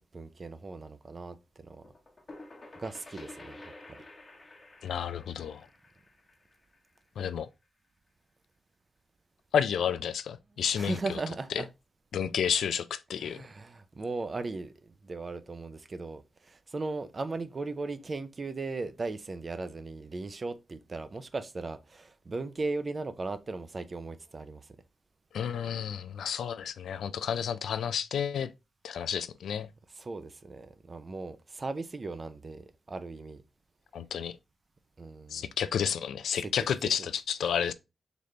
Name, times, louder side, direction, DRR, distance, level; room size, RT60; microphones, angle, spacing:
voice 1, 0.0-1.8 2.8-3.6 3.9-4.0 10.7-11.7 13.2-24.8 30.0-33.4 35.0-35.5 36.4-36.5 36.8-37.1, right 3 dB, 30° right, 0.4 m, -37 dB
sound 1, 1.8-7.4, left 2 dB, 25° left, 0.9 m, -50 dB
voice 2, 4.8-5.7 7.2-7.5 9.5-11.2 12.1-13.4 25.3-28.5 28.8-29.7 33.9-34.4 35.3-37.7, left 8 dB, 85° left, 0.3 m, -31 dB
4.0 x 3.2 x 3.1 m
wide cardioid pair, 150°, 0 cm